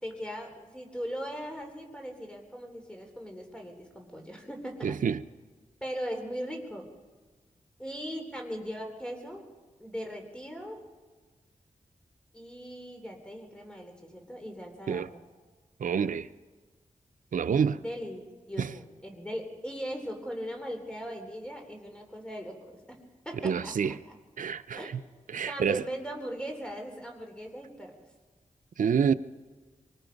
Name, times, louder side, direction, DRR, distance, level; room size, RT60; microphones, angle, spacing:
voice 1, 0.0-5.0 5.8-6.9 7.8-9.5 9.8-10.8 12.3-15.2 17.5-23.8 24.1-24.2 24.8-24.9 25.5-28.0, equal, 5° left, 3.6 m, -39 dB
voice 2, 4.8-5.2 14.9-15.1 15.8-16.3 17.3-17.8 18.6-18.7 23.4-24.0 24.4-25.0 25.3-25.8 28.8-29.1, right 7 dB, 75° right, 0.6 m, -27 dB
24.5 x 24.0 x 5.3 m
wide cardioid pair, 90°, 14 cm